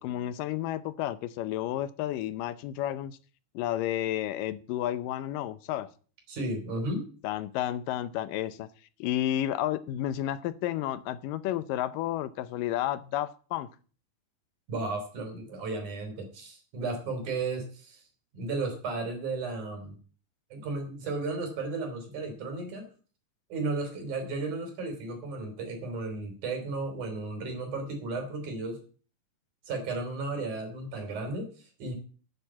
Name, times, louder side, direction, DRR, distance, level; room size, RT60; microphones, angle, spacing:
voice 1, 0.0-3.2 3.6-5.9 7.2-8.7 9.0-13.7, left 12 dB, 80° left, 2.4 m, -31 dB
voice 2, 6.3-7.1 14.7-18.0 18.3-20.0 20.5-22.9 23.5-28.8 29.6-32.0, right 3 dB, 60° right, 4.6 m, -34 dB
9.7 x 8.1 x 7.4 m
omnidirectional pair, 3.9 m